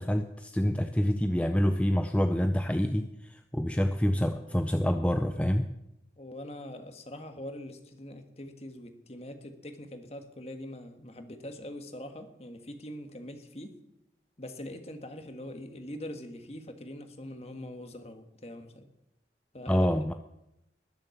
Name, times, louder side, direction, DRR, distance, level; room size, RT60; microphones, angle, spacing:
voice 1, 0.0-5.7 19.7-20.1, equal, 5° left, 7 dB, 0.5 m, -27 dB
voice 2, 6.2-13.7 14.4-18.9 19.5-19.9, left 1 dB, 35° left, 7 dB, 1.6 m, -43 dB
20.5 x 7.4 x 7.1 m, 0.86 s
head